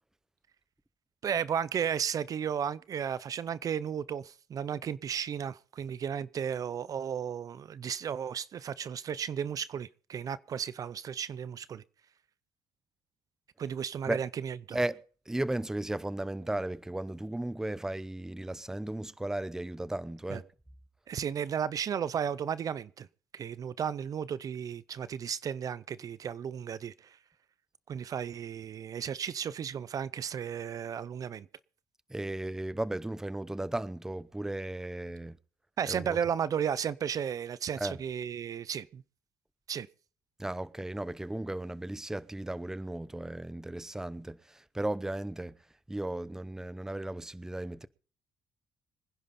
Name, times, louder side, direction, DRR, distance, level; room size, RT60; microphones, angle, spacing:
voice 1, 1.2-11.8 13.6-14.8 20.3-20.4 21.1-23.1 23.3-27.2 27.9-31.5 35.8-39.0 39.7-39.9, right 8 dB, 45° right, 0.6 m, -34 dB
voice 2, 15.3-20.5 32.1-35.4 35.9-36.2 37.8-38.0 40.4-45.6 45.9-47.9, right 1 dB, 5° right, 0.7 m, -35 dB
25.0 x 10.5 x 4.2 m
cardioid pair, 115°, 8 cm